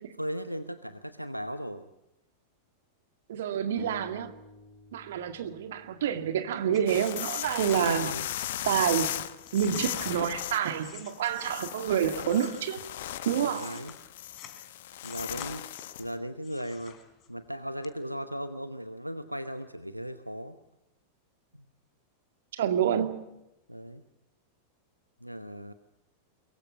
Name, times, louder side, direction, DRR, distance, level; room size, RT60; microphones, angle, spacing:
voice 1, 0.2-1.9 7.7-8.2 13.4-13.9 15.0-15.7 16.0-17.0 17.3-20.6 21.5-21.6 23.7-24.0 25.2-25.7, equal, 90° right, 11 dB, 0.9 m, -37 dB
voice 2, 3.3-4.3 4.9-8.1 8.7-9.2 9.5-12.8 13.3-13.7 22.6-23.1, right 9 dB, 60° right, 7 dB, 2.1 m, -28 dB
sound 1, 3.8-7.0, left 1 dB, ahead, 6.2 m, -51 dB
sound 2, 6.5-11.8 12.2-14.6 15.0-16.0 16.4-17.5 17.8-17.9, left 9 dB, 35° left, 3.5 m, -49 dB
sound 3, 6.9-16.1, left 12 dB, 55° left, 1.1 m, -37 dB
23.0 x 23.0 x 7.5 m, 0.91 s
figure-of-eight pair, 90°, 0 cm